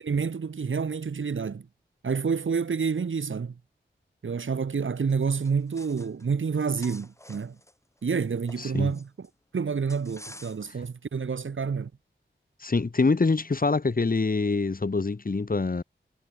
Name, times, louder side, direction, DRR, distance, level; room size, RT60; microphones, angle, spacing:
voice 1, 0.0-1.6 2.0-3.5 4.2-7.6 8.0-9.3 9.5-11.9, right 5 dB, 90° right, 2.4 m, -28 dB
sound 1, 5.1-6.3 6.5-9.3 9.9-10.9, left 1 dB, 15° left, 4.4 m, -49 dB
voice 2, 8.6-8.9 12.6-15.8, left 3 dB, 45° left, 2.4 m, -25 dB
wide cardioid pair, 90°, 20 cm